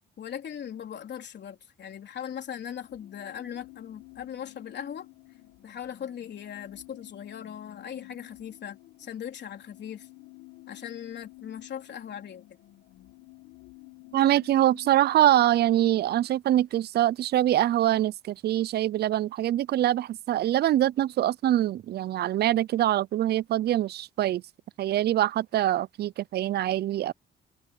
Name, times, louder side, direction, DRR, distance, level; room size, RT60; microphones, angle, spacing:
voice 1, 0.2-5.1 5.6-10.1 10.7-12.4, left 9 dB, 60° left, 3.7 m, -39 dB
sound 1, 2.6-16.3, left 22 dB, 90° left, 1.4 m, -51 dB
voice 2, 14.1-24.4 24.8-27.1, right 13 dB, 55° right, 0.4 m, -24 dB
cardioid pair, 90°, 20 cm